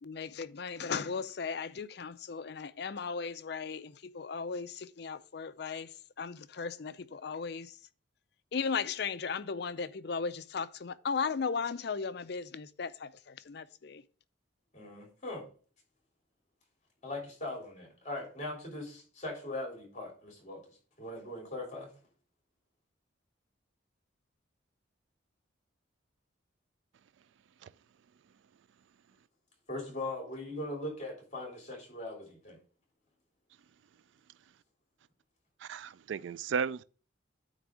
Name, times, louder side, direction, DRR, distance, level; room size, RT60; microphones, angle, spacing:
voice 1, 0.0-7.8 8.5-14.0, left 5 dB, 55° left, 0.4 m, -36 dB
voice 2, 14.7-15.5 17.0-20.6 21.0-21.9 29.7-32.6, left 2 dB, 35° left, 3.1 m, -40 dB
voice 3, 35.6-36.8, right 6 dB, 70° right, 0.3 m, -34 dB
9.1 x 3.4 x 6.1 m
head